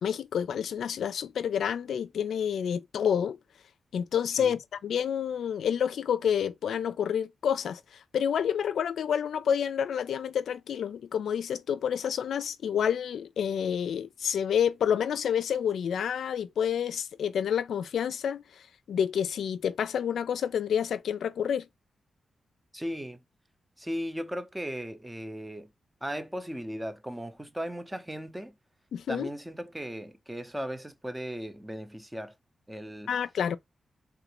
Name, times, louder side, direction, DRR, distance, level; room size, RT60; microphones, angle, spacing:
voice 1, 0.0-3.4 3.9-7.8 8.1-18.4 18.9-21.7 28.9-29.3 33.1-33.6, left 8 dB, 90° left, 0.3 m, -29 dB
voice 2, 22.7-23.2 23.8-25.7 26.0-28.6 29.1-32.3 32.7-33.2, equal, 10° right, 0.6 m, -37 dB
3.5 x 2.5 x 2.9 m
cardioid pair, 85°, 0 cm